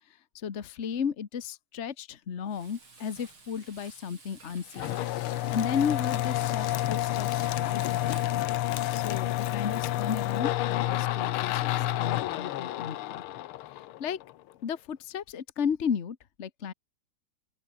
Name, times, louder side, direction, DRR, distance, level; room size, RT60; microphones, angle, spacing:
voice 1, 0.3-5.0 5.5-8.4 8.9-13.2 13.6-14.2 14.6-16.7, left 7 dB, 40° left, 1.4 m, -34 dB
Frying (food), 2.5-8.4, right 3 dB, 80° right, 6.2 m, -53 dB
sound 1, 4.7-14.3, left 14 dB, 85° left, 1.7 m, -29 dB
open air
omnidirectional pair, 2.3 m